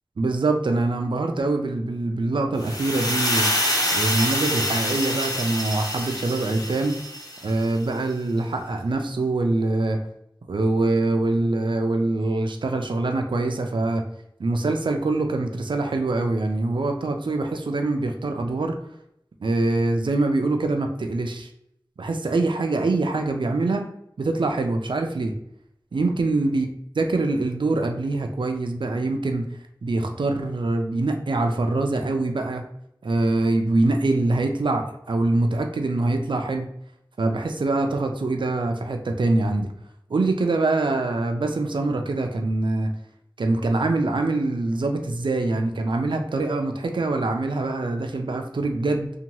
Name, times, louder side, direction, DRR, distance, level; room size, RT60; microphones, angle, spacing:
voice 1, 0.2-3.5 3.9-7.0 7.4-10.0 10.5-14.0 14.4-18.8 19.4-21.5 22.0-23.9 24.2-25.4 25.9-26.7 27.0-29.4 29.8-32.6 33.0-36.7 37.2-39.7 40.1-42.9 43.4-49.1, right 2 dB, 85° right, 4 dB, 0.4 m, -24 dB
sound 1, 2.6-7.6, equal, 50° left, 0.8 m, -26 dB
2.7 x 2.2 x 2.9 m, 0.77 s
wide cardioid pair, 50°, 8 cm